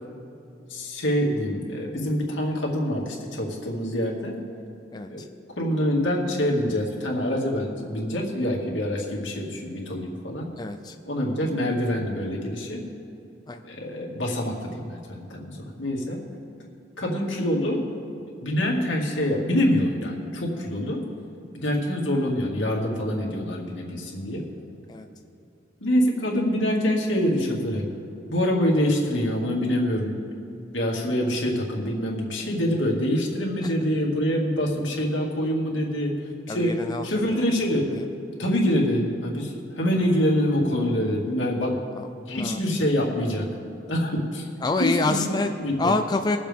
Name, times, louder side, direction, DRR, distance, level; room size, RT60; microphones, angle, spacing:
voice 1, 0.7-4.4 5.1-5.2 5.6-10.5 11.1-12.8 13.7-16.2 17.0-17.9 18.4-21.0 21.5-24.4 25.8-27.9 28.3-30.2 30.7-36.8 37.0-37.9 38.4-41.8 42.3-43.5 43.9-44.5 44.8-45.9, equal, 80° left, -2 dB, 2.2 m, -25 dB
voice 2, 4.9-5.3 10.6-11.0 13.5-13.6 24.9-25.1 33.6-33.7 36.5-37.4 38.0-38.1 42.0-42.6 44.6-45.5 45.8-46.4, left 3 dB, 20° left, 5 dB, 0.4 m, -27 dB
22.0 x 7.5 x 3.6 m, 2.8 s
head